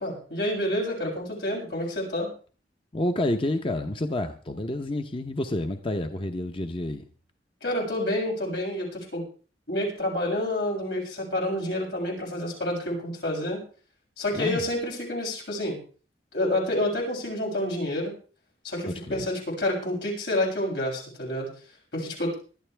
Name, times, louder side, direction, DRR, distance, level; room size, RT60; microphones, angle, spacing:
voice 1, 0.0-2.3 7.6-9.3 9.7-13.6 14.2-15.8 16.3-18.1 18.6-21.5 21.9-22.3, left 1 dB, 85° left, -2 dB, 7.5 m, -28 dB
voice 2, 2.9-7.1 14.3-14.6 18.9-19.3, left 1 dB, 30° left, 7 dB, 0.8 m, -29 dB
20.0 x 12.5 x 3.4 m, 0.39 s
head